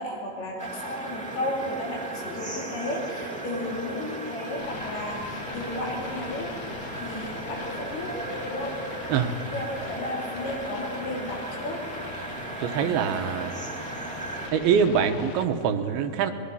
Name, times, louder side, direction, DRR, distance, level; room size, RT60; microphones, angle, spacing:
voice 1, 0.0-8.1 8.4-8.8 9.5-11.8 12.8-13.4, left 1 dB, 80° left, -2 dB, 5.7 m, -34 dB
sound 1, 0.6-14.5, right 2 dB, 5° left, 1.5 m, -36 dB
sound 2, 4.6-15.5, left 5 dB, 65° left, 1.5 m, -41 dB
voice 2, 12.6-13.5 14.5-16.3, right 7 dB, 80° right, 7 dB, 2.9 m, -24 dB
24.5 x 21.0 x 5.6 m, 2.6 s
omnidirectional pair, 4.4 m